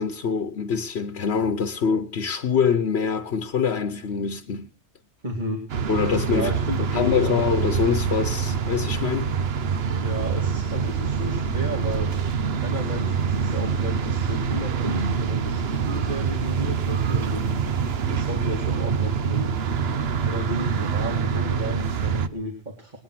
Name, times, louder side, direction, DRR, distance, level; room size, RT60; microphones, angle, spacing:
voice 1, 0.0-4.7 5.9-6.5 6.9-9.3, left 6 dB, 65° left, 1.2 m, -24 dB
voice 2, 5.2-5.6 6.3-7.4 10.0-12.1 12.6-17.4 18.1-19.5 20.2-23.0, equal, 40° right, 2.6 m, -33 dB
sound 1, 5.7-22.3, right 6 dB, 65° right, 1.1 m, -25 dB
21.0 x 9.4 x 5.9 m
omnidirectional pair, 1.2 m